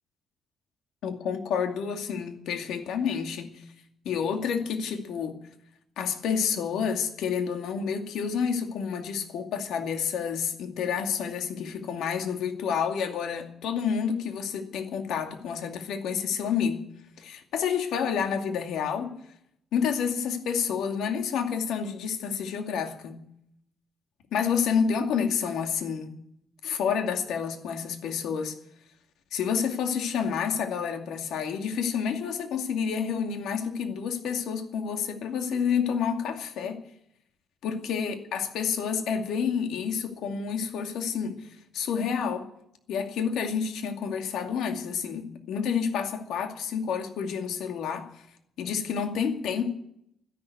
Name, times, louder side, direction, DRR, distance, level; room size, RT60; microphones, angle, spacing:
voice 1, 1.0-3.6 4.0-5.4 6.0-16.9 17.2-19.2 19.7-23.2 24.3-26.1 26.6-28.5 29.3-36.8 37.6-42.5 42.9-48.3 48.6-49.7, left 7 dB, 85° left, 2.3 m, -29 dB
12.5 x 11.0 x 9.4 m
cardioid pair, 160°, 0 cm